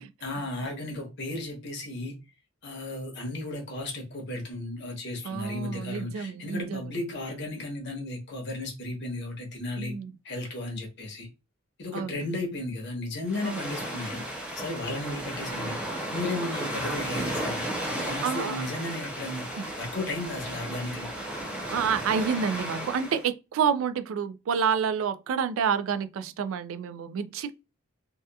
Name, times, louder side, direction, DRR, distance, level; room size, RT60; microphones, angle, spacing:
voice 1, 0.0-2.2 2.6-10.0 10.2-11.3 11.8-14.3 14.6-15.8 16.1-19.5 19.8-21.1, left 2 dB, 55° left, 0.8 m, -34 dB
voice 2, 5.2-6.9 9.8-10.1 11.9-12.4 13.4-13.6 18.2-18.6 19.6-19.7 21.7-27.5, right 7 dB, 70° right, 0.3 m, -29 dB
sound 1, 13.3-23.2, right 1 dB, 5° right, 0.5 m, -34 dB
2.8 x 2.2 x 2.2 m
head